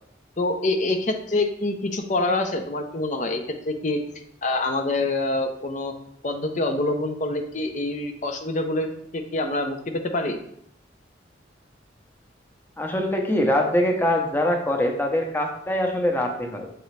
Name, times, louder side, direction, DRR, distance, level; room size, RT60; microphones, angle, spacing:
voice 1, 0.4-4.0 4.4-5.9 6.2-10.4, left 2 dB, 40° left, 5 dB, 0.6 m, -26 dB
voice 2, 12.8-16.7, left 1 dB, 10° left, 2 dB, 0.8 m, -23 dB
8.0 x 3.8 x 3.2 m, 0.71 s
head